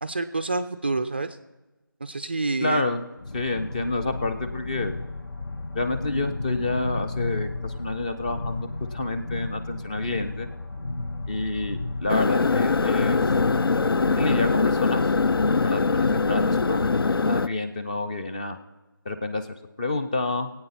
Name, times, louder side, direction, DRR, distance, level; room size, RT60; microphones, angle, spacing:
voice 1, 0.0-1.4 2.0-2.9, right 3 dB, 30° right, 11 dB, 0.3 m, -28 dB
voice 2, 2.6-3.0 3.3-4.9 5.7-10.5 11.3-13.2 14.2-15.1 15.6-16.9 17.3-18.6 19.1-19.5 19.8-20.5, left 2 dB, 20° left, 6 dB, 0.5 m, -28 dB
sound 1, 3.2-16.9, left 2 dB, 65° left, 0.8 m, -33 dB
sound 2, 12.1-17.5, left 4 dB, 85° left, 0.4 m, -22 dB
21.0 x 8.7 x 4.2 m, 1.1 s
figure-of-eight pair, 160°, 12 cm